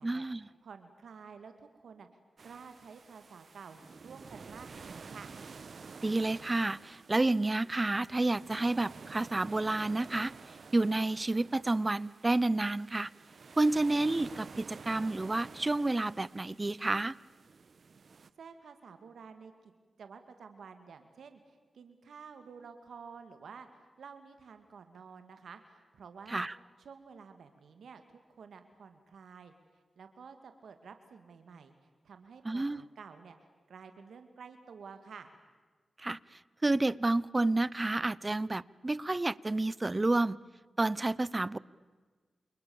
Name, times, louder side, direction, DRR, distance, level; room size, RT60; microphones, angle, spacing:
voice 1, 0.0-0.5 6.0-10.3 10.7-13.1 13.6-17.1 26.3-26.5 32.4-32.8 36.0-36.2 36.6-40.4 40.8-41.6, right 2 dB, 30° right, 21 dB, 0.7 m, -30 dB
voice 2, 0.6-2.1 2.4-5.3 18.4-19.7 20.0-26.5 26.8-29.5 30.0-31.7 32.0-33.4 33.7-35.3, right 6 dB, 90° right, 8 dB, 2.1 m, -51 dB
sound 1, 2.4-18.3, right 5 dB, 65° right, 1.2 m, -51 dB
29.0 x 28.5 x 7.2 m, 1.4 s
cardioid pair, 70°, 0 cm